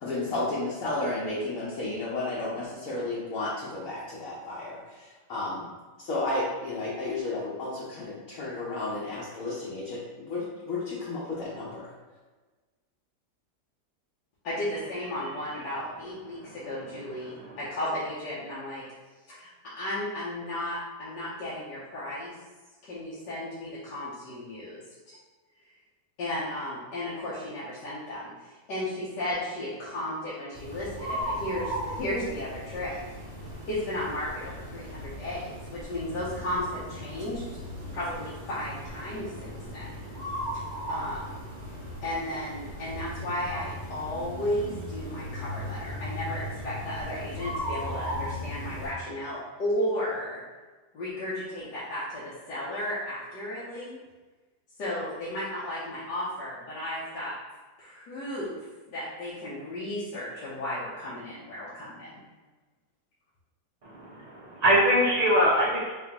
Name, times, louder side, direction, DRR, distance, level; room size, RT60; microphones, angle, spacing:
voice 1, 0.0-5.7 6.0-11.9, left 2 dB, 60° left, -7 dB, 1.1 m, -32 dB
voice 2, 14.4-18.8 19.3-22.3 22.8-24.8 25.1-25.2 26.2-33.0 33.7-37.5 37.9-39.9 40.9-41.4 42.0-50.4 50.9-54.0 54.8-57.3 57.8-58.5 58.9-62.2, left 1 dB, 90° left, -9 dB, 1.5 m, -34 dB
sound 1, 30.5-48.9, equal, 30° right, 1.0 m, -37 dB
voice 3, 63.8-65.9, equal, 80° right, -5 dB, 0.3 m, -23 dB
4.3 x 3.2 x 2.9 m, 1.3 s
omnidirectional pair, 1.8 m